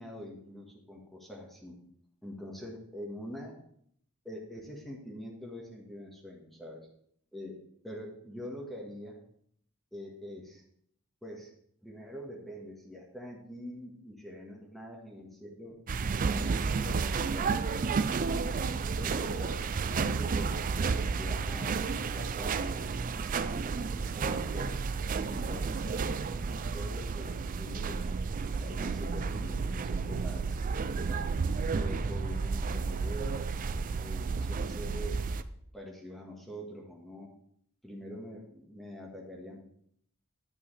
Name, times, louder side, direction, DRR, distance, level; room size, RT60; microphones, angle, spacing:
voice 1, 0.0-1.8 2.2-3.5 4.2-6.8 7.3-7.6 7.8-9.2 9.9-10.6 11.2-11.5 11.8-15.8 16.2-20.6 21.2-23.6 24.1-24.8 25.1-26.1 26.5-28.1 28.4-30.6 31.1-31.2 31.7-33.5 34.0-35.4 35.7-37.3 37.8-39.6, equal, ahead, -1 dB, 1.6 m, -44 dB
sound 1, 15.9-35.4, right 5 dB, 40° right, 0.4 m, -32 dB
9.9 x 8.4 x 3.4 m, 0.67 s
head